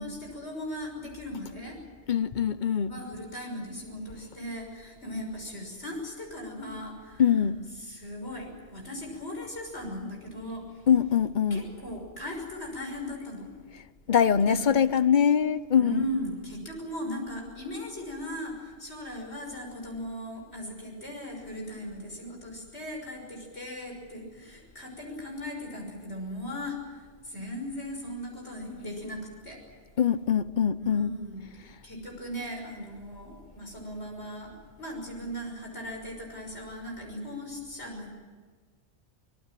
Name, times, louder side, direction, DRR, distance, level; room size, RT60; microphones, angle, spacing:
voice 1, 0.0-1.8 2.8-7.5 7.8-10.8 11.5-13.5 14.4-14.9 15.8-29.6 30.8-31.5 31.8-34.5 34.8-38.1, left 1 dB, 75° left, 6.4 m, -38 dB
voice 2, 2.1-2.9 7.2-7.6 10.9-11.7 14.1-16.0 30.0-31.1, left 8 dB, 50° left, 0.9 m, -23 dB
25.5 x 20.0 x 7.6 m
omnidirectional pair, 1.1 m